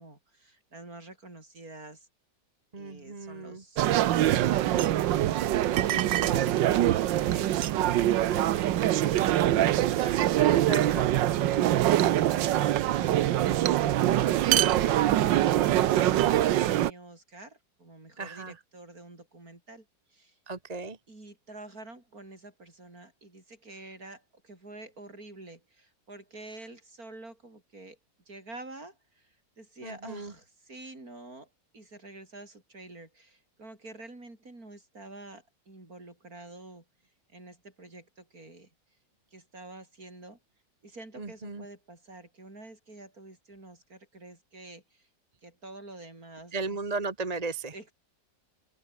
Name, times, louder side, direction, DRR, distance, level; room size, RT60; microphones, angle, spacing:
voice 1, 0.0-2.1 2.8-5.3 5.7-11.2 13.9-20.4 21.1-28.0 28.3-36.8 37.3-38.7 39.3-40.4 40.8-45.1 45.4-46.8 47.7-47.9, right 2 dB, 50° right, 6.3 m, -48 dB
voice 2, 2.7-3.6 5.9-6.5 10.0-10.2 10.5-11.1 18.2-18.6 20.5-21.0 29.8-30.3 41.2-41.6 46.5-47.7, right 3 dB, 25° right, 1.4 m, -36 dB
sound 1, 3.8-16.9, right 13 dB, 80° right, 1.5 m, -24 dB
open air
omnidirectional pair, 2.0 m